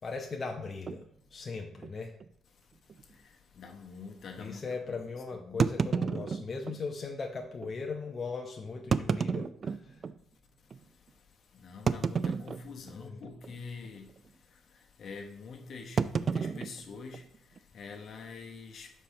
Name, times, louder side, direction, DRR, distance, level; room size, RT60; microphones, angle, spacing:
voice 1, 0.0-1.0 1.3-2.1 4.4-9.9 13.0-13.2, left 4 dB, 40° left, 0.7 m, -38 dB
sound 1, 0.9-1.0 1.8-1.9 2.2-2.3 2.9-3.0 5.6-6.8 7.6-7.7 8.7-10.2 10.7-10.8 11.9-12.9 13.2-13.6 13.8-14.2 16.0-17.6, right 5 dB, 45° right, 0.3 m, -31 dB
voice 2, 3.5-5.6 11.5-14.1 15.0-17.2 17.7-18.9, left 4 dB, 60° left, 1.1 m, -45 dB
5.3 x 4.4 x 5.3 m
cardioid pair, 90°, 0 cm